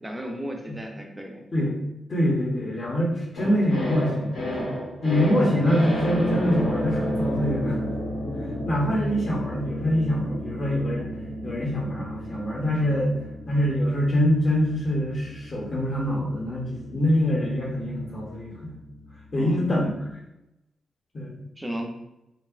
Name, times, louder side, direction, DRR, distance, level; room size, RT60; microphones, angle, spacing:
voice 1, 0.0-1.5 19.4-19.6 21.6-21.9, equal, 10° right, 1 dB, 0.3 m, -34 dB
voice 2, 2.1-4.8 5.0-7.8 8.6-11.1 11.4-13.1 13.5-18.8 19.3-20.1 21.1-21.4, equal, 35° left, -2 dB, 0.6 m, -24 dB
sound 1, 3.4-19.7 20.0-20.1, equal, 80° left, 0.7 m, -32 dB
2.7 x 2.0 x 2.3 m, 0.88 s
wide cardioid pair, 155°, 0 cm